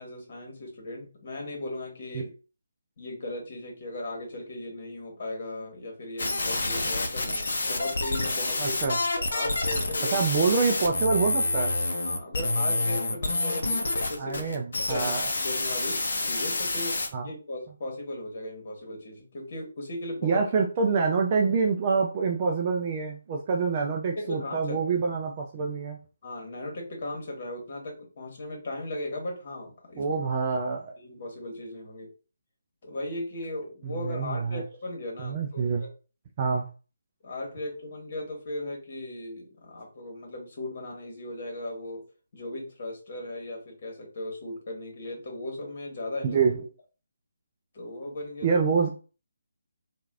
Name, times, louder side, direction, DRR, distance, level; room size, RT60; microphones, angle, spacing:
voice 1, 0.0-2.3 3.0-8.8 9.2-10.2 12.0-20.4 24.1-25.0 26.2-30.0 31.0-32.1 32.8-35.9 37.2-42.0 42.3-46.4 47.7-48.6, left 1 dB, 45° left, 0 dB, 1.3 m, -37 dB
sound 1, 6.2-17.1, left 2 dB, 60° left, 0.6 m, -28 dB
voice 2, 8.6-9.0 10.1-11.8 14.2-15.2 17.1-17.3 20.2-26.0 30.0-30.9 33.8-34.6 35.2-35.8 36.4-36.7 46.2-46.7 48.4-48.9, right 5 dB, 30° right, 1 dB, 0.4 m, -26 dB
3.0 x 2.4 x 2.4 m, 0.35 s
figure-of-eight pair, 150°, 0 cm